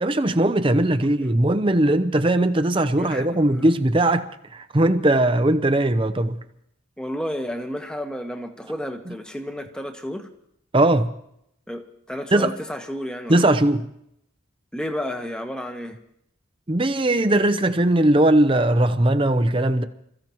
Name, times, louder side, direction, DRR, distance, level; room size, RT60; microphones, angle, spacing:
voice 1, 0.0-4.2 4.5-6.4 10.7-11.1 12.3-12.5 13.3-13.9 16.7-19.8, right 1 dB, 25° right, 0.7 m, -19 dB
voice 2, 1.0-1.3 3.0-3.4 7.0-10.3 11.7-13.4 14.7-16.0, equal, 5° left, 1.2 m, -32 dB
27.5 x 15.0 x 3.1 m
head